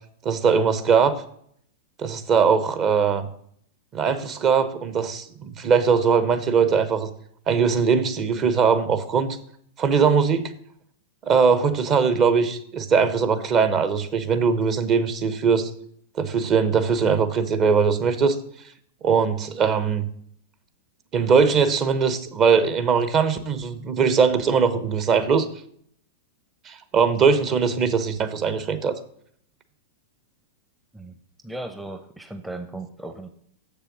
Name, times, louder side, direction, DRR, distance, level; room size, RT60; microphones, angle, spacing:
voice 1, 0.2-1.1 2.0-3.3 3.9-7.1 7.5-9.4 9.8-10.5 11.2-15.7 16.1-18.4 19.0-20.1 21.1-25.5 26.7-28.9, right 6 dB, 35° right, 11 dB, 0.9 m, -21 dB
voice 2, 31.4-33.3, right 2 dB, 5° right, 7 dB, 0.7 m, -36 dB
6.9 x 6.7 x 6.1 m, 0.65 s
hypercardioid pair, 105°, 0 cm